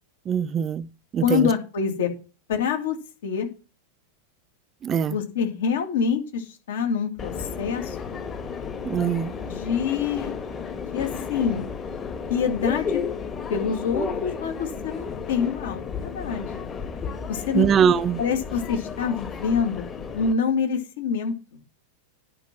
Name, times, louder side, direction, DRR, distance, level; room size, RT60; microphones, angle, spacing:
voice 1, 0.3-0.9 1.1-1.5 4.8-5.2 8.8-9.3 17.5-18.2, right 8 dB, 25° right, 0.5 m, -22 dB
voice 2, 1.2-2.1 2.5-3.0 3.2-3.5 5.1-8.3 9.5-10.3 10.9-11.7 12.3-13.0 13.5-16.7 17.3-17.6 18.2-19.8 20.1-21.3, left 6 dB, 60° left, 2.3 m, -26 dB
Subway metro underground, 7.2-20.3, left 5 dB, 20° left, 1.4 m, -33 dB
10.5 x 5.4 x 5.8 m
figure-of-eight pair, 90°, 0 cm